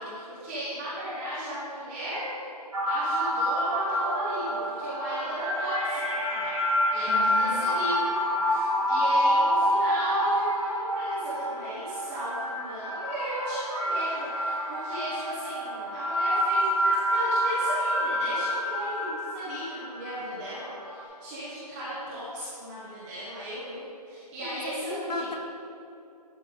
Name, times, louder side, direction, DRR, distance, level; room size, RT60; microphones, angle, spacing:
voice 1, 0.0-2.2 2.9-6.0 6.3-6.6 6.9-8.1 8.4-23.8 24.1-25.2, equal, 15° right, -12 dB, 1.6 m, -35 dB
sound 1, 2.7-21.0, equal, 55° right, 2.2 m, -28 dB
voice 2, 7.1-7.7 24.4-25.4, left 2 dB, 85° left, 3 dB, 1.1 m, -35 dB
12.5 x 6.0 x 4.0 m, 2.6 s
figure-of-eight pair, 155°, 21 cm